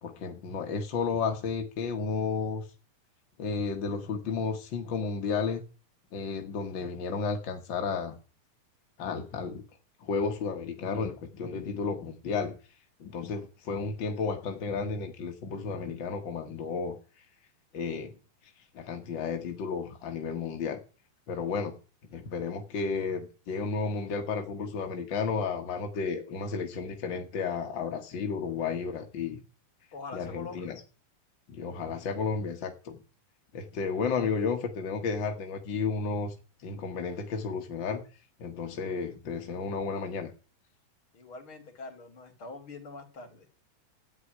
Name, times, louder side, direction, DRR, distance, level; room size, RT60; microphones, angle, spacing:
voice 1, 0.0-2.6 3.4-5.6 6.1-8.2 9.0-9.6 10.0-12.6 13.0-17.0 17.7-18.1 18.7-20.8 21.3-21.8 22.1-29.4 30.1-30.8 31.5-33.0 33.5-36.3 36.6-38.0 38.4-40.3, left 5 dB, 60° left, 4 dB, 1.2 m, -32 dB
voice 2, 29.9-30.8 41.1-43.5, left 3 dB, 35° left, 7 dB, 3.5 m, -44 dB
13.5 x 9.7 x 9.6 m, 0.38 s
omnidirectional pair, 4.4 m